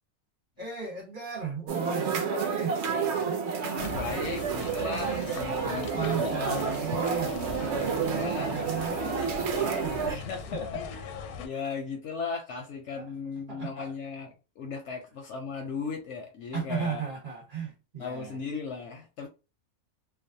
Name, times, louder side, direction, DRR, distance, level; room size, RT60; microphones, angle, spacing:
voice 1, 0.6-2.8 3.3-3.7 5.6-10.0 10.5-10.7 13.0-13.1 13.5-13.9 16.5-18.4, right 5 dB, 40° right, 1.0 m, -36 dB
sound 1, 1.7-10.2, right 6 dB, 65° right, 0.6 m, -30 dB
voice 2, 3.6-6.7 8.0-8.9 10.1-17.0 18.0-19.3, left 5 dB, 65° left, 0.7 m, -37 dB
sound 2, 3.8-11.5, left 5 dB, 85° left, 1.1 m, -40 dB
2.5 x 2.0 x 2.6 m
omnidirectional pair, 1.6 m